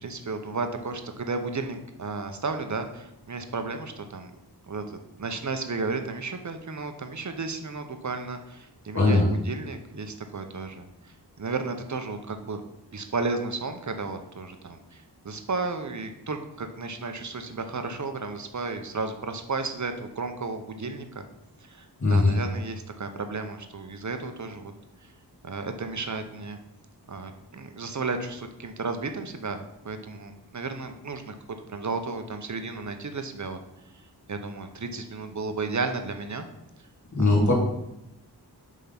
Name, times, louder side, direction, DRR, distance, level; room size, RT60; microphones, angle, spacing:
voice 1, 0.0-4.3 4.7-12.6 12.9-21.2 21.6-24.7 25.4-26.6 27.1-31.3 31.7-33.6 34.3-36.5 37.2-37.4, right 3 dB, 45° right, 7 dB, 0.8 m, -33 dB
voice 2, 8.9-9.2 22.0-22.3 37.1-37.5, left 2 dB, 45° left, -4 dB, 2.6 m, -20 dB
6.9 x 3.7 x 5.8 m, 0.88 s
wide cardioid pair, 80°, 40 cm